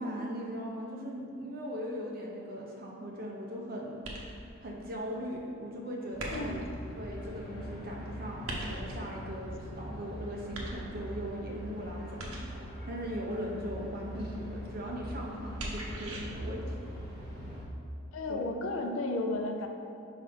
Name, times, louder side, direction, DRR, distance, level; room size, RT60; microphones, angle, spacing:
voice 1, 0.0-4.0 4.6-6.6 7.0-12.5 12.9-16.8 18.3-18.5, equal, 45° right, -2 dB, 0.9 m, -39 dB
sound 1, 4.0-4.6 6.2-6.8 8.5-9.1 10.5-11.2 12.2-12.7 15.6-16.2, right 1 dB, 80° right, 1.0 m, -39 dB
sound 2, 6.1-17.6, equal, 45° left, 1.5 m, -42 dB
voice 2, 18.1-19.7, left 2 dB, 70° left, 5 dB, 0.5 m, -33 dB
5.3 x 4.1 x 5.5 m, 2.6 s
head